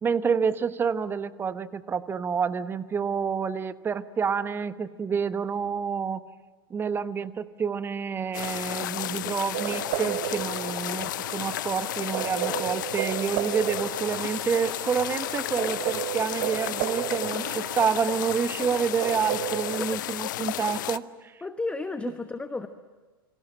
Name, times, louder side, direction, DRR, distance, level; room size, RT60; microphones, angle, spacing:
voice 1, 0.0-6.2 6.7-21.4, right 6 dB, 20° right, 14 dB, 1.1 m, -28 dB
sound 1, 8.3-21.0, left 14 dB, 55° left, 0.7 m, -33 dB
sound 2, 9.5-19.9, right 18 dB, 45° right, 1.0 m, -34 dB
voice 2, 19.8-20.1 21.4-22.7, left 3 dB, 10° left, 10 dB, 1.1 m, -33 dB
28.5 x 25.5 x 7.5 m, 1.4 s
figure-of-eight pair, 90°, 12 cm